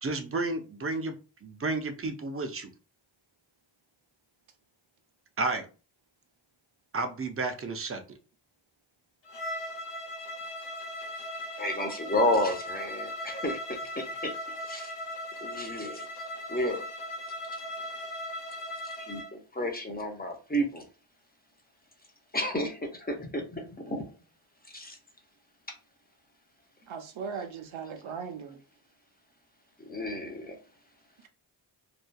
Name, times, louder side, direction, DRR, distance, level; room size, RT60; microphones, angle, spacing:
voice 1, 0.0-1.1 1.4-2.7 5.4-5.7 6.9-8.0, right 3 dB, 30° right, 0.5 m, -31 dB
Bowed string instrument, 9.3-19.3, left 1 dB, 60° left, 0.8 m, -38 dB
voice 2, 11.6-14.3 14.6-14.9 15.4-16.1 16.5-16.9 18.8-20.9 22.3-24.1 24.6-25.0 29.8-30.6, left 1 dB, 20° left, 0.6 m, -31 dB
voice 3, 26.9-28.6, right 6 dB, 80° right, 0.6 m, -38 dB
2.7 x 2.3 x 2.2 m
wide cardioid pair, 75°, 47 cm